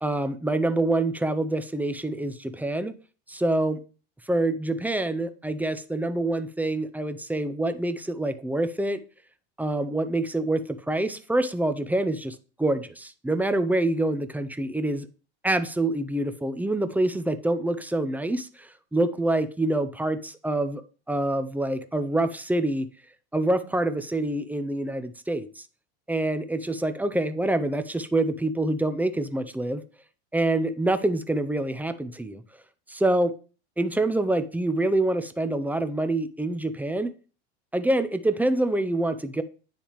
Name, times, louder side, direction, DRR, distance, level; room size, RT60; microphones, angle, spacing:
voice 1, 0.0-2.9 3.3-3.8 4.3-9.0 9.6-15.1 15.4-20.8 21.1-22.9 23.3-25.7 26.1-29.8 30.3-32.4 32.9-33.3 33.8-37.1 37.7-39.4, right 2 dB, 5° right, 10 dB, 0.5 m, -26 dB
9.8 x 3.4 x 3.1 m, 0.37 s
supercardioid pair, 105°, 34 cm